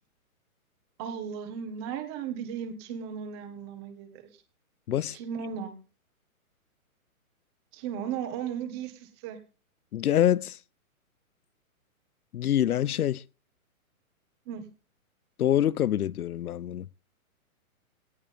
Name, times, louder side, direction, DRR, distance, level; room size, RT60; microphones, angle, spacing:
voice 1, 1.0-4.3 5.1-5.8 7.7-9.4 14.4-14.7, right 8 dB, 20° right, 1.6 m, -36 dB
voice 2, 9.9-10.6 12.3-13.2 15.4-16.9, left 11 dB, 85° left, 0.8 m, -25 dB
18.0 x 11.0 x 3.5 m
hypercardioid pair, 170°, 43 cm